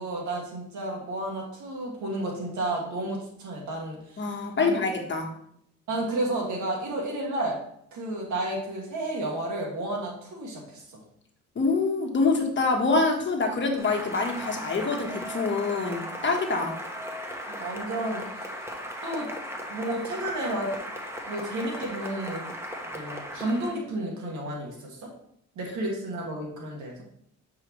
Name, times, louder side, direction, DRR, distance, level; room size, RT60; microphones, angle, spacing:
voice 1, 0.0-4.8 5.9-7.6 7.9-10.8 17.5-18.5 19.0-19.3 19.7-20.7 21.3-22.4 22.8-25.1 25.6-27.0, right 1 dB, 75° right, -1 dB, 2.1 m, -32 dB
voice 2, 4.2-5.3 11.5-16.7, left 3 dB, 40° left, 1 dB, 1.3 m, -25 dB
Cheering / Applause, 13.8-23.8, equal, 10° right, 1.2 m, -37 dB
7.6 x 4.8 x 3.1 m, 0.69 s
cardioid pair, 90°, 30 cm